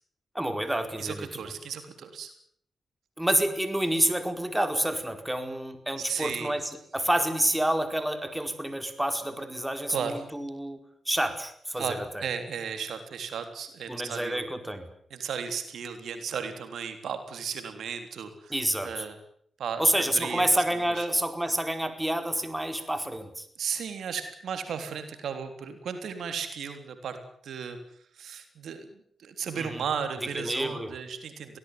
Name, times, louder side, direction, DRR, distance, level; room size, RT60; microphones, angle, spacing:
voice 1, 0.3-1.3 3.2-10.8 11.0-12.3 13.9-14.9 18.5-19.1 19.8-23.5 29.5-29.8 30.3-30.9, right 1 dB, 10° right, 8 dB, 4.7 m, -28 dB
voice 2, 1.0-2.3 6.1-6.5 9.9-10.2 11.8-14.5 15.1-18.5 18.8-19.2 19.6-21.1 23.6-27.2 27.4-27.8 28.1-31.6, right 6 dB, 80° right, 8 dB, 3.5 m, -35 dB
23.0 x 18.0 x 9.6 m, 0.65 s
cardioid pair, 60°, 0 cm